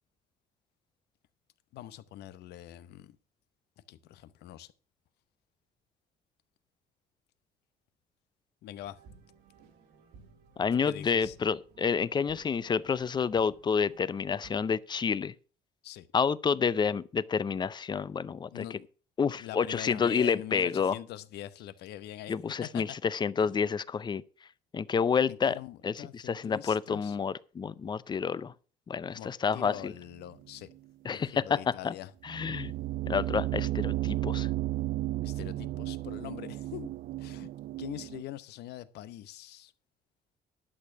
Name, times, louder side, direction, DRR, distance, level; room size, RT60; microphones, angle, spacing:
voice 1, 1.7-3.2 3.9-4.7 8.6-9.0 10.7-11.3 15.8-16.1 18.5-18.9 19.4-22.3 22.6-22.8 23.4-23.5 25.3-27.2 29.1-30.7 31.1-32.1 35.2-36.9 37.2-37.5 37.8-39.7, left 13 dB, 75° left, 0.9 m, -43 dB
sound 1, 8.8-14.8, right 5 dB, 80° right, 2.2 m, -58 dB
voice 2, 10.6-15.3 16.1-18.6 19.2-21.0 22.3-24.2 24.7-25.6 25.8-28.5 28.9-29.9 31.0-31.9 32.2-32.7 33.1-34.5, left 6 dB, 25° left, 0.5 m, -29 dB
sound 2, 29.7-30.0 30.5-30.6 32.3-38.2, right 16 dB, 55° right, 0.5 m, -33 dB
11.5 x 6.6 x 6.1 m
cardioid pair, 110°, 17 cm